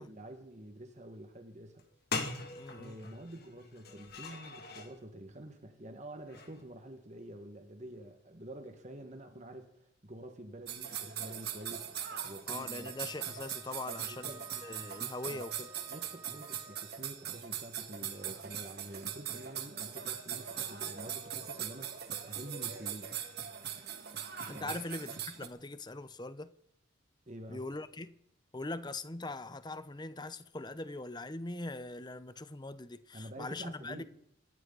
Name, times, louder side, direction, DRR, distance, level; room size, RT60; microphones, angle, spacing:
voice 1, 0.0-1.8 2.8-12.9 13.9-14.4 15.2-15.4 15.9-23.1 24.5-24.8 27.3-27.7 33.1-34.0, right 1 dB, 40° right, 1.7 m, -48 dB
sound 1, 1.8-1.9 2.1-4.9 6.2-6.6, left 4 dB, 55° left, 2.5 m, -41 dB
voice 2, 2.5-3.0 12.5-15.7 24.5-26.5 27.5-28.1 28.5-34.0, left 2 dB, 20° left, 0.8 m, -42 dB
sound 2, 10.7-25.5, right 9 dB, 55° right, 2.1 m, -41 dB
Wind instrument woodwind instrument, 12.5-17.0, right 4 dB, 10° right, 1.3 m, -55 dB
26.5 x 13.0 x 4.1 m
head